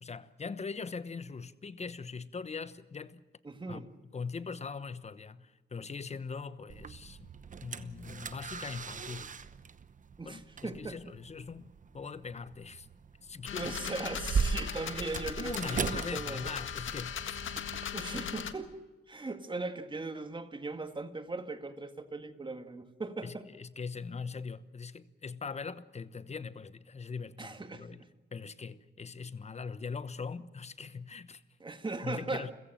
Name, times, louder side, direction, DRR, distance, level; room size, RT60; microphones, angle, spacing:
voice 1, 0.0-3.2 3.7-7.3 7.6-9.3 10.2-12.9 13.2-13.7 15.4-17.4 23.2-28.0 28.3-31.4 32.0-32.5, left 5 dB, 35° left, 1.1 m, -41 dB
voice 2, 3.4-3.9 10.2-11.0 13.5-16.5 17.9-18.7 19.1-23.5 27.4-28.1 31.6-32.5, right 3 dB, 25° right, 1.9 m, -39 dB
sound 1, 6.7-17.8, right 5 dB, 40° right, 1.0 m, -39 dB
sound 2, 13.5-18.5, left 9 dB, 85° left, 1.8 m, -39 dB
29.5 x 16.0 x 7.6 m
wide cardioid pair, 120°, 20 cm